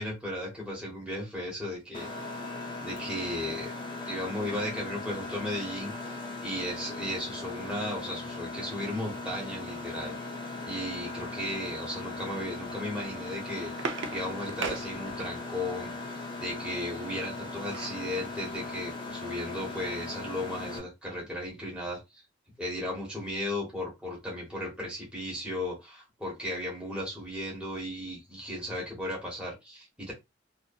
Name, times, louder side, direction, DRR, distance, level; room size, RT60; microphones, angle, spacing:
voice 1, 0.0-2.1 2.8-3.7 4.0-10.2 10.7-13.7 14.1-15.9 16.4-22.0 22.6-30.1, left 1 dB, 5° right, 1.2 m, -35 dB
Mechanisms, 1.9-20.8, left 3 dB, 25° left, 0.6 m, -39 dB
sound 1, 13.5-15.6 17.2-18.1 18.5-18.6 18.9-19.1, right 4 dB, 85° right, 0.5 m, -38 dB
2.5 x 2.5 x 2.3 m
head